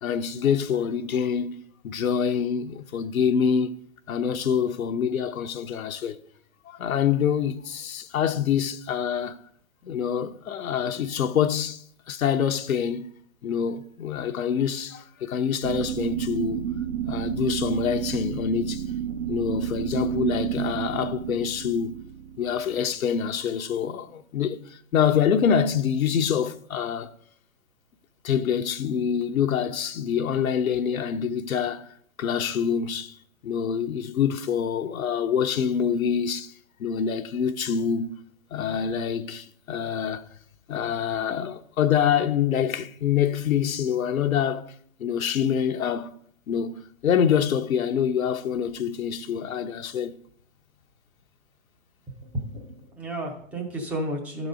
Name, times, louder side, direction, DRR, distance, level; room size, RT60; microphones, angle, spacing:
voice 1, 0.0-3.8 4.1-6.2 6.7-9.4 9.8-13.1 13.4-16.7 17.1-18.8 19.3-22.0 22.4-27.1 28.2-31.9 32.2-33.2 33.4-36.5 36.8-38.2 38.5-40.2 40.7-44.7 45.0-46.1 46.5-50.2, left 8 dB, 85° left, 0.7 m, -26 dB
sound 1, 15.6-23.6, right 10 dB, 60° right, 0.8 m, -31 dB
voice 2, 52.2-54.5, right 1 dB, 5° right, 0.5 m, -32 dB
11.5 x 4.0 x 4.9 m
hypercardioid pair, 140°, 41 cm